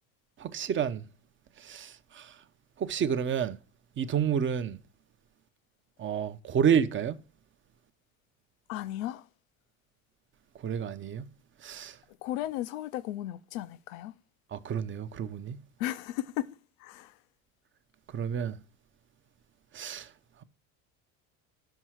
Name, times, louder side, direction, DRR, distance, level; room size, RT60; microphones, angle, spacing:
voice 1, 0.4-1.0 1.6-2.3 2.8-3.6 4.0-4.8 6.0-7.2 10.6-11.2 11.6-12.0 14.5-15.6 18.1-18.6 19.7-20.1, right 8 dB, 30° right, 0.6 m, -29 dB
voice 2, 8.7-9.3 12.2-14.1 15.8-16.5 16.8-17.1, left 14 dB, 85° left, 0.6 m, -35 dB
5.5 x 4.5 x 6.1 m
supercardioid pair, 90°, 41 cm